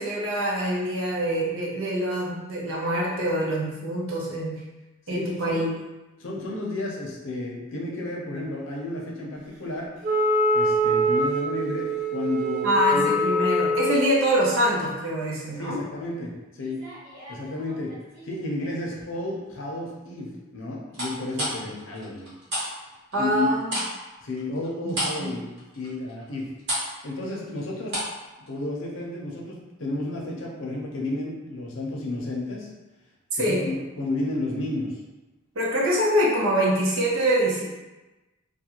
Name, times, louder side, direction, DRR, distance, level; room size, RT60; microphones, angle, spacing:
voice 1, 0.0-4.5 5.1-5.7 12.6-15.8 23.1-23.7 24.8-25.3 33.3-33.7 35.6-37.6, equal, 80° right, -4 dB, 0.7 m, -24 dB
voice 2, 5.1-5.7 6.2-9.9 10.5-13.3 15.3-16.8 17.3-17.9 18.2-22.3 23.2-23.5 24.2-26.5 27.0-28.0 28.5-32.7 33.3-34.9, left 2 dB, 65° left, -2 dB, 0.6 m, -32 dB
Wind instrument woodwind instrument, 10.0-14.2, right 1 dB, 35° right, 0.4 m, -24 dB
sound 1, 16.5-18.3 18.7-19.2 20.9-22.7 22.9-28.2 28.5-28.6, equal, 60° right, 1.1 m, -32 dB
2.4 x 2.1 x 2.9 m, 1.1 s
head